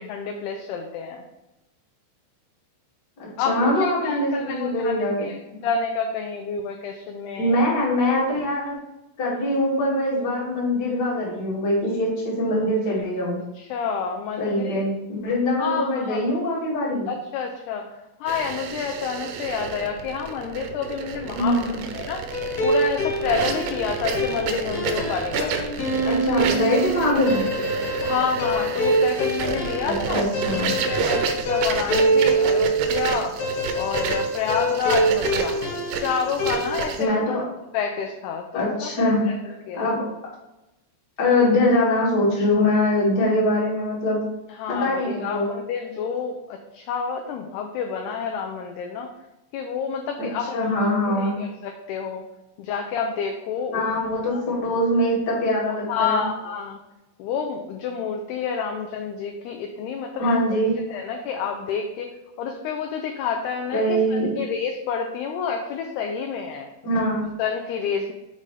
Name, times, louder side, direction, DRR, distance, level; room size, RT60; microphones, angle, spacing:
voice 1, 0.1-1.2 3.4-7.6 13.6-14.8 15.6-16.2 17.1-17.9 18.2-21.6 21.9-22.2 22.6-25.6 26.0-26.2 26.6-26.7 27.0-27.2 28.0-30.2 30.7-33.4 33.7-35.6 36.0-37.4 37.7-39.4 39.7-39.9 44.6-49.1 49.5-50.7 51.1-52.2 52.6-53.8 54.3-54.4 55.9-56.8 57.2-60.4 60.9-62.1 62.4-66.7 67.4-68.1, left 6 dB, 85° left, 3 dB, 2.3 m, -29 dB
voice 2, 3.2-5.2 7.4-8.8 9.2-13.4 14.4-17.1 21.3-21.8 26.0-27.5 29.8-30.7 32.1-32.3 37.0-37.4 38.5-40.0 41.2-44.2 44.7-45.5 50.2-50.3 50.5-51.4 53.7-56.2 60.2-61.0 63.7-64.4 66.8-67.3, left 1 dB, 35° left, -6 dB, 1.8 m, -23 dB
sound 1, 18.3-37.1, right 6 dB, 85° right, 2.9 m, -30 dB
sound 2, 22.3-36.7, right 2 dB, 55° left, 2.6 m, -25 dB
6.8 x 5.2 x 3.3 m, 0.96 s
omnidirectional pair, 5.2 m